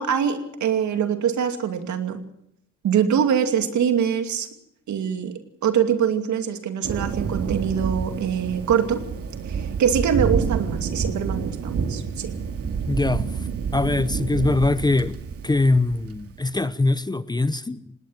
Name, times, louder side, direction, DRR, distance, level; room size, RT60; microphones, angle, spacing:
voice 1, 0.0-2.2 2.8-4.5 4.9-9.0 9.5-12.3, right 8 dB, 70° right, 2.6 m, -23 dB
Thunder, 6.8-16.5, right 6 dB, 50° right, 2.3 m, -28 dB
voice 2, 12.9-13.2 13.7-15.2 15.4-17.9, left 2 dB, 15° left, 0.8 m, -22 dB
19.0 x 18.5 x 7.6 m
cardioid pair, 90°, 30 cm